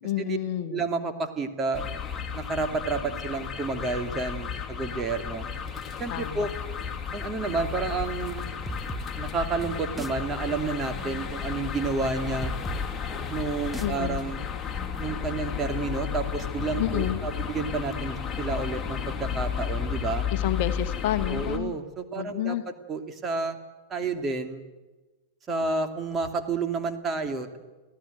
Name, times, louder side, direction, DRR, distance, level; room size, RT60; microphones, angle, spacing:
voice 1, 0.0-0.8 6.1-6.5 13.8-14.2 16.8-17.2 20.3-21.7 22.1-22.6, left 12 dB, 50° left, 10 dB, 1.2 m, -29 dB
voice 2, 0.7-1.8 2.3-5.4 6.0-6.5 7.1-8.4 9.2-12.5 13.3-14.4 15.0-20.2 21.3-23.6 23.9-24.6 25.5-27.6, right 4 dB, 25° right, 6 dB, 2.6 m, -30 dB
sound 1, 1.7-21.6, left 7 dB, 20° left, 2.6 m, -33 dB
sound 2, 8.6-16.0, right 3 dB, 5° right, 1.0 m, -42 dB
25.0 x 17.0 x 8.0 m, 1.2 s
figure-of-eight pair, 90°, 0 cm